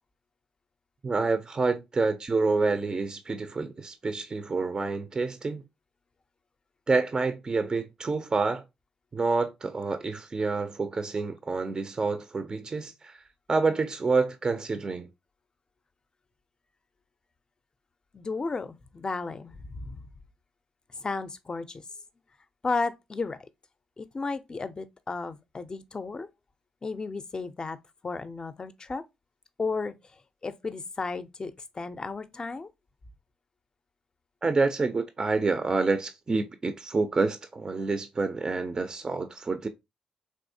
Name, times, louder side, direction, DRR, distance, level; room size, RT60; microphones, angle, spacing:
voice 1, 1.0-5.6 6.9-8.6 9.1-15.1 34.4-39.7, right 3 dB, 30° right, 0.4 m, -28 dB
voice 2, 18.1-20.0 20.9-21.8 22.6-23.4 24.0-26.3 26.8-27.8 28.0-29.0 29.6-29.9 30.4-32.7, left 4 dB, 35° left, 0.4 m, -33 dB
3.5 x 2.7 x 2.6 m
cardioid pair, 75°, 3 cm